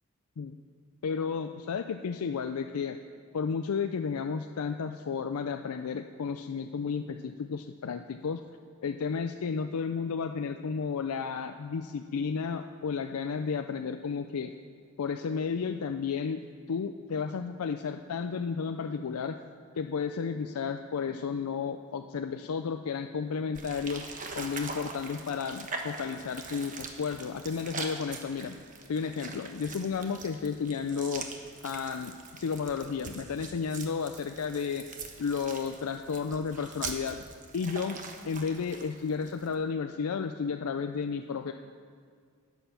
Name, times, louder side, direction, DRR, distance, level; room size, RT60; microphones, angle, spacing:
voice 1, 1.0-3.0 3.3-8.4 8.8-14.5 15.0-19.4 19.7-24.1 24.3-28.6 28.9-31.3 31.6-34.9 35.2-37.2 37.5-38.0 38.2-41.5, left 5 dB, 90° left, 7 dB, 0.4 m, -32 dB
sound 1, 23.5-39.5, right 4 dB, 40° right, 1.1 m, -43 dB
12.5 x 9.0 x 5.8 m, 2.1 s
head